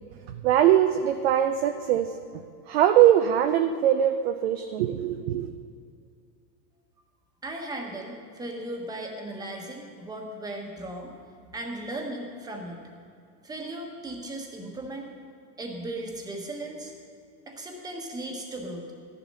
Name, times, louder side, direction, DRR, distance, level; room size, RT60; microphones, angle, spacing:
voice 1, 0.3-5.5, right 11 dB, 40° right, 7 dB, 0.5 m, -22 dB
voice 2, 7.4-11.1 11.5-12.8 13.4-15.1 15.6-16.9 17.5-18.9, right 1 dB, 10° right, 1 dB, 1.2 m, -36 dB
13.0 x 10.5 x 5.5 m, 2.4 s
supercardioid pair, 155°, 50 cm